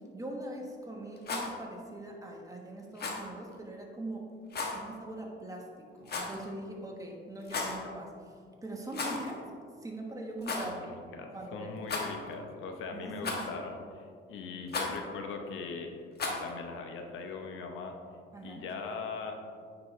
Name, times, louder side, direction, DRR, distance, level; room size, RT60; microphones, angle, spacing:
voice 1, 0.0-4.3 4.7-8.1 8.6-9.4 9.8-10.9 11.3-11.7 12.9-13.4 18.3-18.6, right 1 dB, 15° right, 0 dB, 1.3 m, -42 dB
Rattle, 1.1-1.5 3.0-3.3 4.5-4.8 6.1-6.5 7.4-7.8 8.9-9.3 9.6-9.7 10.4-10.7 11.8-12.3 13.2-13.6 14.7-15.0 16.2-16.5, left 3 dB, 55° left, 1.3 m, -35 dB
voice 2, 11.1-15.9 16.3-18.0 18.4-19.5, left 4 dB, 85° left, 4 dB, 0.8 m, -40 dB
9.4 x 5.0 x 3.2 m, 2.2 s
cardioid pair, 90°, 20 cm